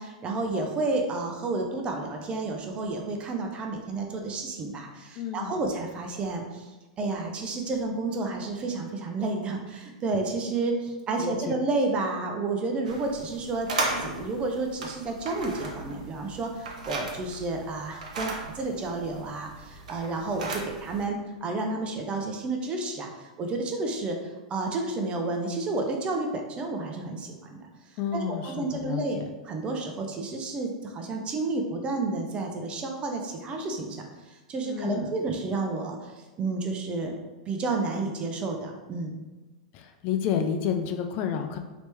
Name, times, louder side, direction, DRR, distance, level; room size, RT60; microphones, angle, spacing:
voice 1, 0.0-6.7 7.0-13.7 14.0-24.2 24.5-27.7 28.1-37.1 37.5-39.2, right 3 dB, 25° right, 2 dB, 0.6 m, -31 dB
voice 2, 5.2-5.6 11.2-11.5 28.0-29.3 34.6-35.1 39.7-41.6, left 8 dB, 45° left, 5 dB, 0.4 m, -30 dB
sound 1, 12.9-21.1, right 3 dB, 80° right, 0.7 m, -36 dB
3.0 x 2.9 x 3.3 m, 1.2 s
hypercardioid pair, 120°, 4 cm